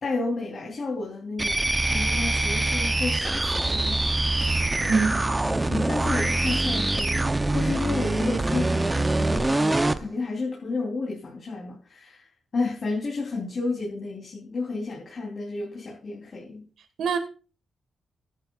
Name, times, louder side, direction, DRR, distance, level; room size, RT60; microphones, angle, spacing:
voice 1, 0.0-4.3 5.7-12.3 12.5-16.7, left 3 dB, 45° left, 3.2 m, -32 dB
sound 1, 1.4-10.0, right 2 dB, 15° right, 0.6 m, -24 dB
voice 2, 4.8-5.3 17.0-17.2, right 5 dB, 80° right, 1.5 m, -24 dB
15.5 x 10.5 x 2.4 m
cardioid pair, 100°, 0 cm